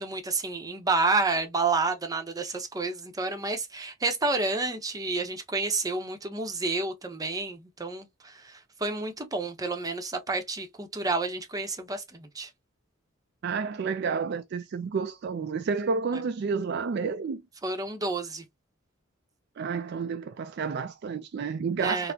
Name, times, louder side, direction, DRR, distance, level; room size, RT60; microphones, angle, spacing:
voice 1, 0.0-12.5 17.6-18.4 21.8-22.1, right 3 dB, 20° right, 0.6 m, -30 dB
voice 2, 13.4-17.4 19.6-22.1, right 5 dB, 55° right, 0.3 m, -30 dB
4.1 x 2.0 x 2.7 m
head